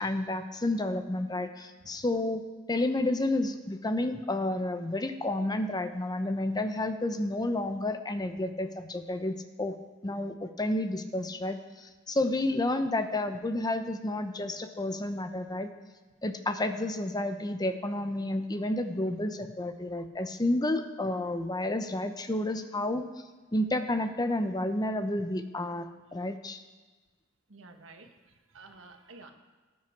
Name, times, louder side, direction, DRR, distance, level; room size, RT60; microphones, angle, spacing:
voice 1, 0.0-2.4 2.7-9.8 10.0-15.7 16.2-23.0 23.5-26.6, left 1 dB, 20° left, 8 dB, 0.7 m, -30 dB
voice 2, 27.5-29.3, right 3 dB, 70° right, 5 dB, 1.4 m, -51 dB
18.0 x 8.6 x 4.6 m, 1.3 s
head